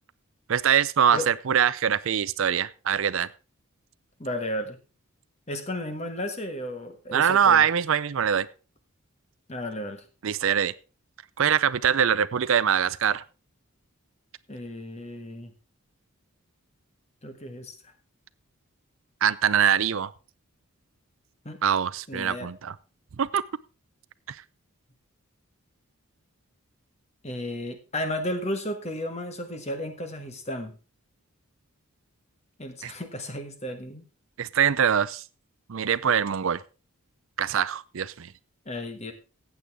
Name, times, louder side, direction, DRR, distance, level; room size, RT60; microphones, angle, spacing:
voice 1, 0.5-3.3 7.1-8.5 10.2-10.7 11.4-13.2 19.2-20.1 21.6-22.7 23.2-23.4 24.3-24.4 32.8-32.9 34.4-35.2 35.7-36.6 37.4-38.3, right 8 dB, 65° right, 17 dB, 0.5 m, -23 dB
voice 2, 4.2-4.8 5.5-7.6 9.5-10.0 14.5-15.5 17.2-17.7 21.4-21.6 22.1-22.5 27.2-30.7 32.6-34.0 38.6-39.1, left 1 dB, 30° left, 7 dB, 1.5 m, -33 dB
15.0 x 8.5 x 3.6 m, 0.33 s
head